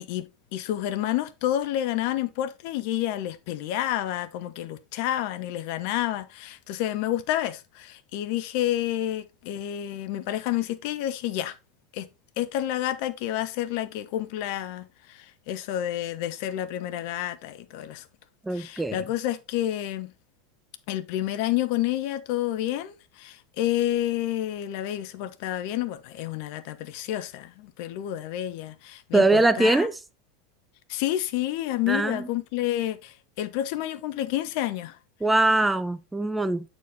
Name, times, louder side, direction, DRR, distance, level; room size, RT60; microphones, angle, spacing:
voice 1, 0.0-11.6 11.9-12.1 12.4-18.0 18.5-20.1 20.9-29.9 30.9-35.0, left 13 dB, 55° left, 0.7 m, -29 dB
voice 2, 18.4-19.0 29.1-30.0 31.9-32.3 35.2-36.7, right 2 dB, 10° right, 0.5 m, -22 dB
8.2 x 4.5 x 3.9 m
figure-of-eight pair, 80°, 0 cm